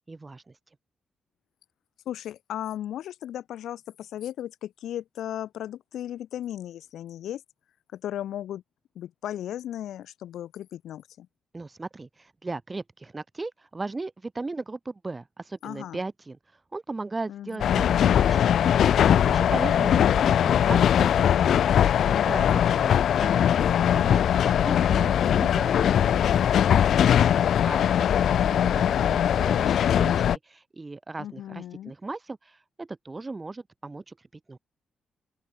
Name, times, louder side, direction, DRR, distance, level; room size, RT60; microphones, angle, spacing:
voice 1, 0.1-0.6 11.5-16.4 16.7-17.9 18.1-18.7 19.0-21.8 22.2-26.6 27.3-34.2 34.5-34.6, right 3 dB, 20° right, 2.7 m, -37 dB
voice 2, 2.0-7.4 7.9-8.6 8.9-11.3 15.6-16.0 17.3-17.9 22.0-22.4 24.9-25.4 31.2-31.9, left 11 dB, 85° left, 3.2 m, -36 dB
sound 1, 17.6-30.4, left 9 dB, 70° left, 0.5 m, -21 dB
open air
cardioid pair, 110°, 0 cm